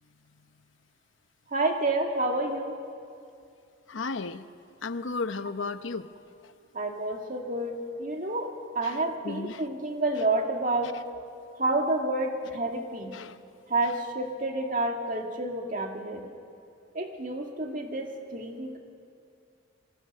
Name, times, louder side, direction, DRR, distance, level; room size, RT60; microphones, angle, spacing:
voice 1, 1.5-2.8 6.7-11.0 11.6-13.1 13.7-16.2 16.9-18.8, right 2 dB, 40° right, 3 dB, 2.2 m, -29 dB
voice 2, 3.9-4.4 4.8-6.1 6.4-6.5 8.8-9.6 13.1-13.4, left 4 dB, 75° left, 11 dB, 0.8 m, -34 dB
25.5 x 22.0 x 6.6 m, 2.5 s
head